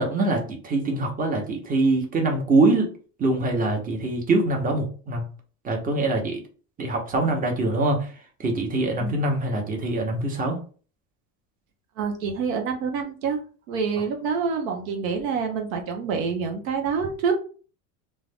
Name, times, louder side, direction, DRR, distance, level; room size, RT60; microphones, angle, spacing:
voice 1, 0.0-2.9 3.2-5.3 5.6-6.4 6.8-8.1 8.4-10.6, right 2 dB, 20° right, 2 dB, 0.8 m, -23 dB
voice 2, 12.0-13.4 13.7-17.3, right 5 dB, 85° right, 3 dB, 0.7 m, -27 dB
2.4 x 2.2 x 3.4 m, 0.39 s
supercardioid pair, 100°, 39 cm